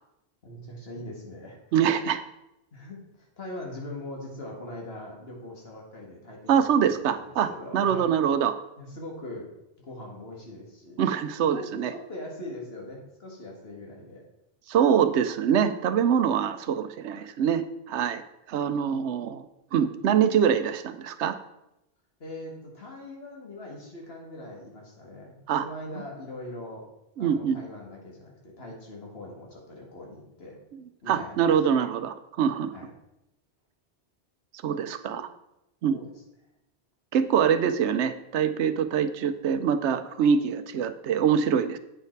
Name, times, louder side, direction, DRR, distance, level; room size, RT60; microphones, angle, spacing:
voice 1, 0.4-1.6 2.7-8.1 8.8-9.5 9.8-11.0 11.4-14.2 22.2-26.8 27.2-30.6 31.0-31.8 32.7-32.9 34.9-35.2 35.9-36.1, left 1 dB, 60° left, -1 dB, 2.1 m, -41 dB
voice 2, 1.7-2.2 6.5-8.5 11.0-11.9 14.7-18.2 18.5-19.4 19.7-21.3 25.5-25.6 27.2-27.6 31.1-32.7 34.6-35.3 35.8-36.0 37.1-41.8, right 8 dB, 85° right, 11 dB, 0.9 m, -24 dB
8.7 x 5.7 x 4.5 m, 0.88 s
omnidirectional pair, 1.1 m